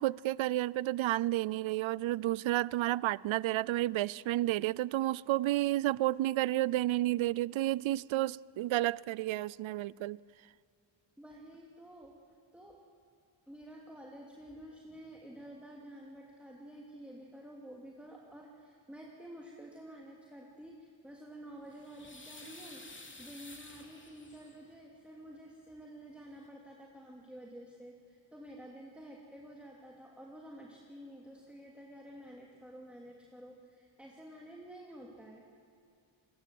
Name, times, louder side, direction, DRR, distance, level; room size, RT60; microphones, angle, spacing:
voice 1, 0.0-10.2, right 15 dB, 90° right, 0.5 m, -31 dB
voice 2, 11.2-12.2 12.5-12.8 13.5-35.4, right 1 dB, 5° right, 2.7 m, -50 dB
sound 1, 21.4-24.7 26.0-26.1 26.3-26.5, left 2 dB, 25° left, 2.8 m, -52 dB
27.0 x 22.0 x 7.8 m
wide cardioid pair, 115°, 46 cm